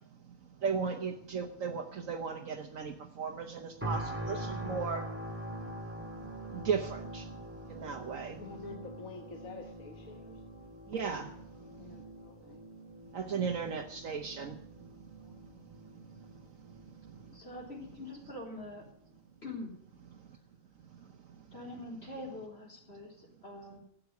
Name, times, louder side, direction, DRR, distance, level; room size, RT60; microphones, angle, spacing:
voice 1, 0.6-5.1 6.5-7.2 7.7-8.4 10.9-11.3 13.1-14.5, right 6 dB, 70° right, 3 dB, 1.4 m, -35 dB
sound 1, 3.8-18.8 19.3-19.5, equal, 10° right, 2.0 m, -44 dB
voice 2, 8.3-10.7 11.6-12.6 13.3-13.9 15.2-15.7, left 4 dB, 75° left, 4 dB, 1.8 m, -49 dB
voice 3, 17.3-18.9 19.4-19.8 21.5-23.8, left 2 dB, 45° left, -2 dB, 4.3 m, -44 dB
13.0 x 8.5 x 9.4 m, 0.68 s
omnidirectional pair, 1.5 m